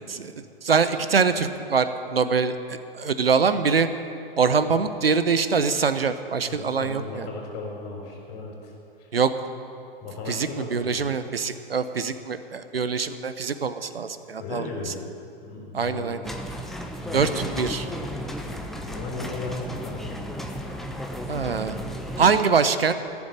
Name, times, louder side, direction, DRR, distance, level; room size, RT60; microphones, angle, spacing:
voice 1, 0.6-3.9 4.4-7.3 9.1-9.3 10.3-14.9 15.7-16.2 17.1-17.3 17.6-17.8 21.3-21.8 22.2-22.9, right 5 dB, 75° right, 11 dB, 0.9 m, -24 dB
voice 2, 6.4-8.7 10.0-11.1 14.4-15.1 15.4-16.1 17.0-17.5 18.7-20.1, left 3 dB, 35° left, -1 dB, 3.9 m, -36 dB
sound 1, 16.2-22.4, equal, ahead, 0.4 m, -34 dB
14.5 x 7.3 x 9.6 m, 2.6 s
figure-of-eight pair, 110°, 30 cm